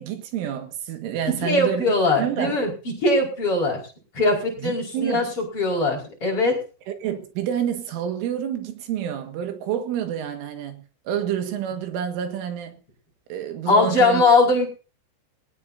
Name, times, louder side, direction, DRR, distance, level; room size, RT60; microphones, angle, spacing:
voice 1, 0.0-2.6 4.6-5.3 7.0-12.8 13.3-14.2, right 9 dB, 80° right, 4.2 m, -28 dB
voice 2, 1.4-2.7 3.0-3.8 4.1-6.6 13.7-14.7, left 2 dB, 30° left, 5.3 m, -20 dB
20.5 x 18.5 x 2.7 m
omnidirectional pair, 5.6 m